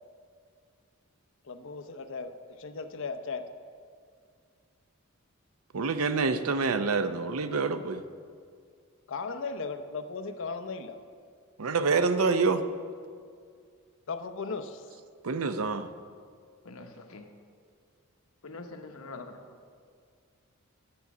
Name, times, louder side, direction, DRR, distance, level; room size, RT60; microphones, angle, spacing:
voice 1, 1.4-2.3 2.6-3.5 9.1-11.0 14.1-14.9 19.0-19.1, left 4 dB, 65° left, 9 dB, 0.7 m, -36 dB
voice 2, 5.7-8.0 11.6-12.6 15.2-15.9, right 4 dB, 80° right, 11 dB, 0.6 m, -27 dB
voice 3, 16.6-17.3 18.4-19.4, left 3 dB, 80° left, 5 dB, 1.0 m, -44 dB
10.5 x 8.2 x 6.0 m, 2.1 s
head